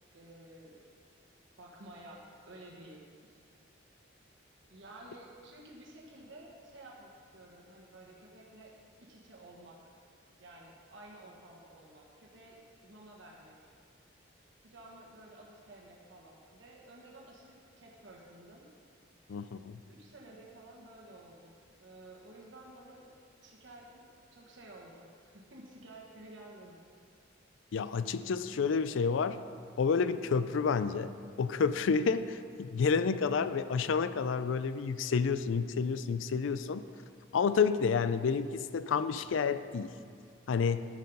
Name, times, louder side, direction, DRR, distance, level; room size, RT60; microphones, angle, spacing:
voice 1, 0.1-0.8 1.6-3.4 4.7-8.7 9.0-9.9 10.4-13.6 14.6-18.6 19.9-23.1 23.4-24.0 24.3-26.8, right 1 dB, 70° right, -3 dB, 1.4 m, -53 dB
voice 2, 19.3-19.8 27.7-29.4 29.8-36.8 37.3-39.9 40.5-40.9, left 5 dB, 75° left, 13 dB, 0.4 m, -30 dB
10.5 x 6.4 x 5.4 m, 2.3 s
head